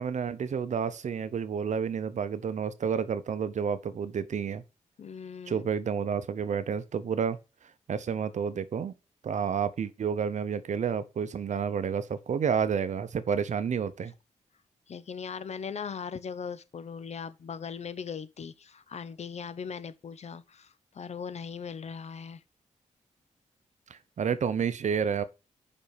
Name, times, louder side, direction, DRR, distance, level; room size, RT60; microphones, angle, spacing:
voice 1, 0.0-4.6 5.5-7.4 7.9-8.9 9.2-14.1 23.9-25.2, right 7 dB, 65° right, 0.8 m, -30 dB
voice 2, 5.0-5.7 14.9-22.4, left 6 dB, 55° left, 0.8 m, -39 dB
5.4 x 5.3 x 6.7 m
cardioid pair, 80°, 13 cm